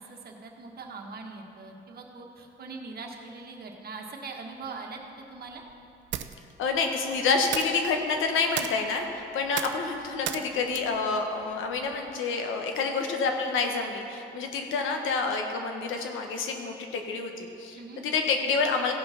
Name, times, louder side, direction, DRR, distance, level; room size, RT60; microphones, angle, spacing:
voice 1, 0.0-5.6 17.7-18.0, right 4 dB, 50° right, 1 dB, 1.5 m, -42 dB
sound 1, 4.9-12.2, right 10 dB, 70° right, 0.5 m, -39 dB
voice 2, 6.6-17.8 18.0-18.9, left 4 dB, 85° left, 4 dB, 1.2 m, -28 dB
16.0 x 5.5 x 5.8 m, 2.7 s
cardioid pair, 90°, 20 cm